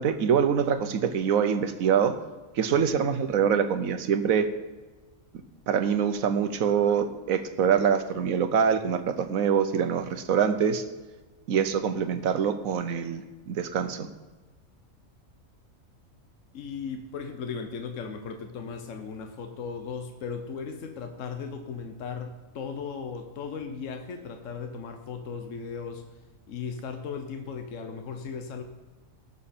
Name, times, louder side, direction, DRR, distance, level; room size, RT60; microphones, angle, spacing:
voice 1, 0.0-2.1 2.5-4.5 5.7-10.8 11.5-14.1, right 7 dB, 85° right, 10 dB, 1.3 m, -25 dB
voice 2, 16.5-26.1 26.5-28.6, left 5 dB, 70° left, 5 dB, 1.3 m, -37 dB
18.0 x 7.1 x 4.3 m, 1.3 s
omnidirectional pair, 1.4 m